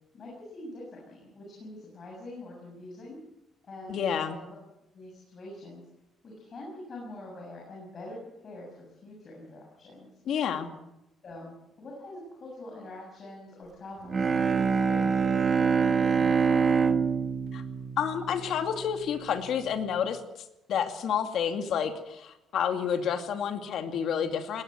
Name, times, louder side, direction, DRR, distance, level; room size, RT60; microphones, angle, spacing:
voice 1, 0.1-3.2 3.6-4.0 4.2-4.6 4.9-5.8 6.2-10.1 11.2-16.7, left 1 dB, 35° left, -2 dB, 7.0 m, -44 dB
voice 2, 3.9-4.4 10.3-10.7 17.5-17.6 18.0-20.2 20.7-24.6, left 8 dB, 60° left, 6 dB, 2.5 m, -29 dB
Bowed string instrument, 14.0-18.9, right 5 dB, 30° right, 1.4 m, -25 dB
20.5 x 19.0 x 7.6 m, 0.92 s
cardioid pair, 160°, 0 cm